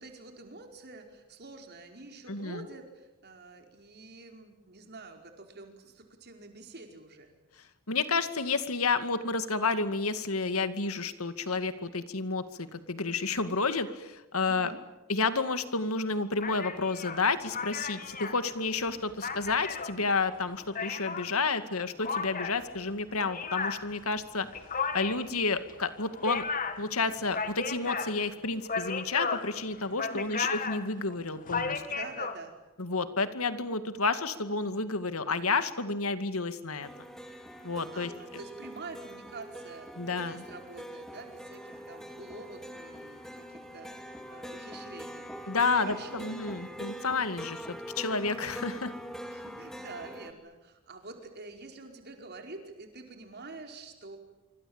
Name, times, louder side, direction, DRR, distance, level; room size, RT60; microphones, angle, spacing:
voice 1, 0.0-7.3 14.5-14.8 30.1-30.5 31.9-32.6 37.9-46.3 49.2-54.2, right 3 dB, 50° right, 4 dB, 4.9 m, -47 dB
voice 2, 2.3-2.7 7.9-14.7 15.1-24.5 24.9-26.4 26.8-31.8 32.8-36.9 37.6-38.1 40.0-40.4 45.5-48.9, left 4 dB, 90° left, 10 dB, 2.2 m, -30 dB
sound 1, 16.4-21.3 22.0-32.4, left 5 dB, 40° left, 2.3 m, -35 dB
sound 2, 36.8-50.3, equal, ahead, 2.4 m, -43 dB
26.5 x 25.0 x 8.9 m, 1.0 s
head